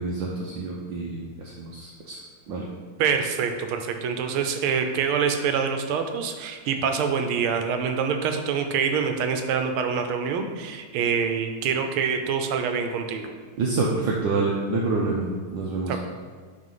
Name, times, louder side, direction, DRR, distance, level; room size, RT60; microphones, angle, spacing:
voice 1, 0.0-2.2 2.5-2.6 13.6-16.0, right 3 dB, 70° right, -3 dB, 1.4 m, -27 dB
voice 2, 3.0-13.3 15.9-16.0, right 6 dB, 90° right, 6 dB, 1.6 m, -25 dB
9.2 x 3.2 x 5.6 m, 1.5 s
omnidirectional pair, 2.3 m